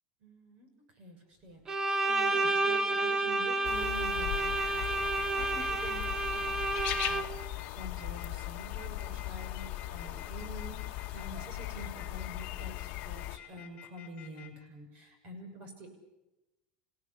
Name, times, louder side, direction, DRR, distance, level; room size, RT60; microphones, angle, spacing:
voice 1, 0.2-0.7 1.0-15.9, right 1 dB, 40° right, 6 dB, 6.6 m, -47 dB
Bowed string instrument, 1.7-7.5, right 2 dB, 15° right, 1.1 m, -30 dB
sound 1, 3.6-13.4, left 17 dB, 50° left, 1.3 m, -38 dB
sound 2, 4.4-14.5, left 12 dB, 30° left, 4.3 m, -50 dB
27.5 x 17.0 x 8.7 m, 0.97 s
supercardioid pair, 150°, 4 cm